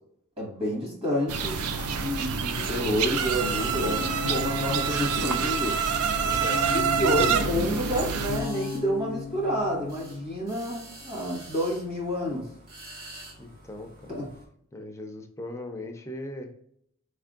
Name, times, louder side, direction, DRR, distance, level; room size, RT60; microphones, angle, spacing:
voice 1, 0.4-5.8 6.7-12.5 14.1-14.3, equal, 25° right, -3 dB, 1.4 m, -29 dB
sound 1, 1.3-8.4, right 6 dB, 75° right, 0.4 m, -27 dB
sound 2, 1.4-10.3, left 6 dB, 85° left, 0.3 m, -37 dB
sound 3, 1.5-14.5, right 1 dB, 40° right, 1.0 m, -48 dB
voice 2, 6.2-6.7 7.0-7.3 13.4-14.2 14.7-16.5, left 1 dB, 15° left, 3 dB, 0.5 m, -39 dB
4.3 x 3.5 x 2.4 m, 0.68 s
head